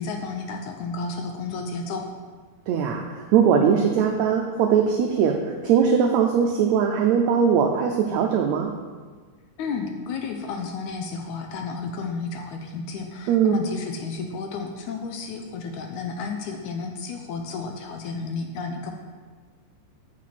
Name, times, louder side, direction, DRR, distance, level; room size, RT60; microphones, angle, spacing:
voice 1, 0.0-2.1 9.6-18.9, left 4 dB, 80° left, 4 dB, 1.9 m, -32 dB
voice 2, 2.7-8.7 13.3-13.5, right 7 dB, 90° right, 3 dB, 1.5 m, -20 dB
6.8 x 6.4 x 5.8 m, 1.5 s
omnidirectional pair, 3.8 m